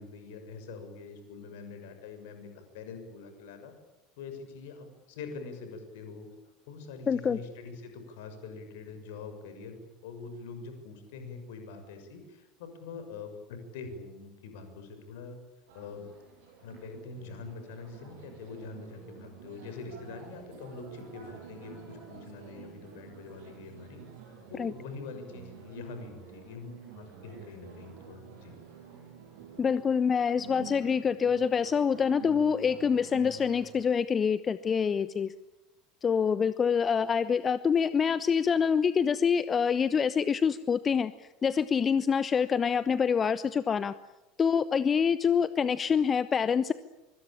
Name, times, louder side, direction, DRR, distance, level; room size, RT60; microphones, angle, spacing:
voice 1, 0.0-3.7 4.2-6.3 6.7-15.4 15.7-16.0 16.4-24.0 24.5-28.5, left 4 dB, 65° left, 7 dB, 6.4 m, -44 dB
voice 2, 7.1-7.4 24.6-24.7 29.6-35.3 36.0-43.9 44.4-46.7, left 6 dB, 30° left, 15 dB, 1.0 m, -26 dB
sound 1, 15.7-33.8, right 7 dB, 60° right, 7.6 m, -49 dB
25.0 x 24.5 x 8.8 m, 1.0 s
figure-of-eight pair, 70°, 0 cm